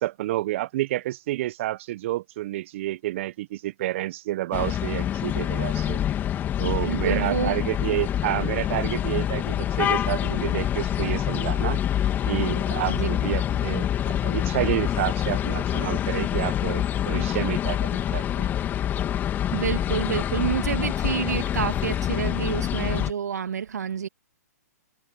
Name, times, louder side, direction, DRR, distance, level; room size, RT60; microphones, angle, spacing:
voice 1, 0.0-6.0 6.6-11.8 12.3-18.5, right 15 dB, 45° right, 1.0 m, -29 dB
sound 1, 4.5-23.1, left 10 dB, 20° left, 2.6 m, -26 dB
voice 2, 6.6-7.6 12.9-13.1 19.5-24.1, right 7 dB, 75° right, 1.7 m, -28 dB
hypercardioid pair, 125°, 9 cm